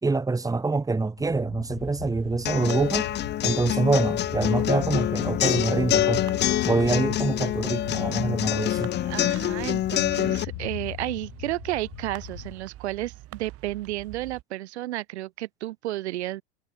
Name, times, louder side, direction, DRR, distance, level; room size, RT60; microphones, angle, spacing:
voice 1, 0.0-3.1 3.4-6.2 6.6-8.9, right 3 dB, 10° right, 2.9 m, -25 dB
sound 1, 1.2-12.6, left 32 dB, 60° left, 3.7 m, -38 dB
sound 2, 1.7-14.4, right 16 dB, 45° right, 4.2 m, -45 dB
sound 3, 2.5-10.4, left 12 dB, 30° left, 1.0 m, -26 dB
voice 2, 9.0-16.4, right 16 dB, 85° right, 2.9 m, -32 dB
supercardioid pair, 125°, 32 cm